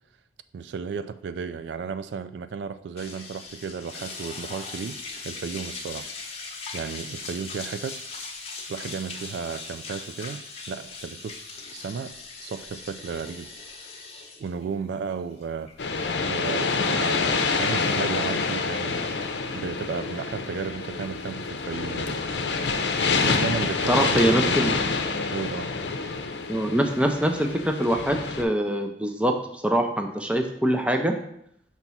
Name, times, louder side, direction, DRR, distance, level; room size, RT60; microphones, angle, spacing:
voice 1, 0.5-5.0 5.2-6.1 6.7-8.1 8.7-11.4 11.7-13.5 14.4-15.9 16.3-19.1 19.5-22.2 23.2-24.6 25.3-25.7, right 6 dB, 75° right, 0.3 m, -34 dB
sound 1, 3.0-16.5, left 4 dB, 35° left, 0.9 m, -39 dB
sound 2, 15.8-28.4, left 4 dB, 75° left, 0.6 m, -27 dB
voice 2, 23.9-24.8 26.5-29.4 29.6-31.1, right 1 dB, 5° right, 0.5 m, -23 dB
5.8 x 3.0 x 5.5 m
head